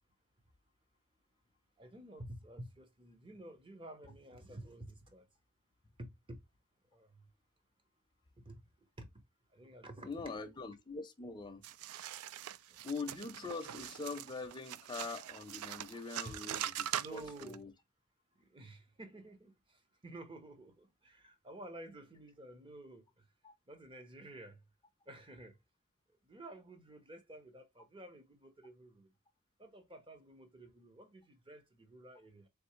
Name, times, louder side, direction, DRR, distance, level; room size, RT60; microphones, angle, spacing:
voice 1, 1.8-5.2 6.0-6.4 6.9-7.2 8.4-8.6 9.0-9.1 9.5-10.2 12.7-12.8 16.2-16.4 17.0-17.6 18.4-23.0 23.7-24.6 25.1-25.6 26.2-29.1 29.6-32.5, right 1 dB, 25° right, 0.9 m, -51 dB
voice 2, 10.0-11.7 12.8-17.7 23.4-23.5, left 4 dB, 20° left, 0.6 m, -43 dB
sound 1, 11.6-17.6, right 11 dB, 85° right, 0.3 m, -42 dB
3.7 x 3.5 x 3.1 m
head